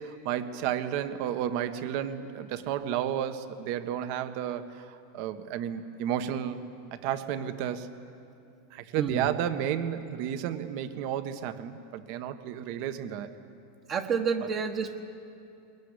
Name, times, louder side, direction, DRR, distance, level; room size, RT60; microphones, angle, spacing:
voice 1, 0.0-6.6 6.9-7.9 8.7-13.3 14.4-14.5, right 10 dB, 55° right, 10 dB, 1.4 m, -32 dB
voice 2, 13.9-15.0, right 6 dB, 35° right, 1 dB, 1.4 m, -29 dB
21.5 x 21.0 x 9.9 m, 2.6 s
supercardioid pair, 135°, 0 cm